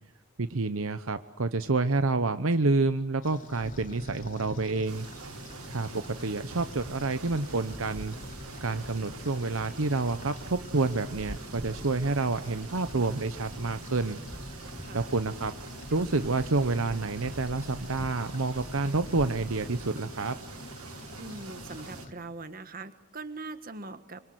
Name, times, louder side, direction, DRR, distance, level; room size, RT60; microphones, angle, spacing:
voice 1, 0.4-5.1 5.7-8.2 8.6-14.2 14.9-15.5 15.9-20.4, right 3 dB, 65° right, 11 dB, 0.9 m, -28 dB
sound 1, 3.2-22.1, left 2 dB, 35° left, 3.3 m, -46 dB
sound 2, 3.6-19.9, equal, ahead, 1.0 m, -47 dB
sound 3, 4.9-22.1, right 5 dB, 85° right, 1.5 m, -46 dB
voice 2, 21.2-24.2, right 3 dB, 40° right, 10 dB, 1.6 m, -41 dB
26.0 x 25.0 x 7.9 m, 0.82 s
head